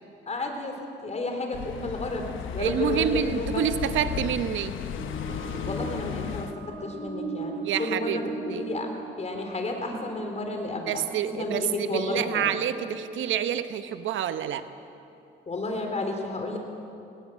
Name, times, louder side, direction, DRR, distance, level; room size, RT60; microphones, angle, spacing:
voice 1, 0.3-3.6 5.7-8.9 9.2-11.0 11.4-12.5 15.5-16.6, left 2 dB, 35° left, 3 dB, 3.8 m, -32 dB
sound 1, 1.5-6.5, left 8 dB, 80° left, 1.1 m, -34 dB
voice 2, 2.6-4.7 7.6-8.2 8.5-8.7 10.9-14.6, right 9 dB, 75° right, 10 dB, 1.0 m, -28 dB
sound 2, 4.8-14.2, right 2 dB, 25° right, 6.9 m, -38 dB
19.0 x 18.0 x 7.5 m, 2.6 s
cardioid pair, 90°, 20 cm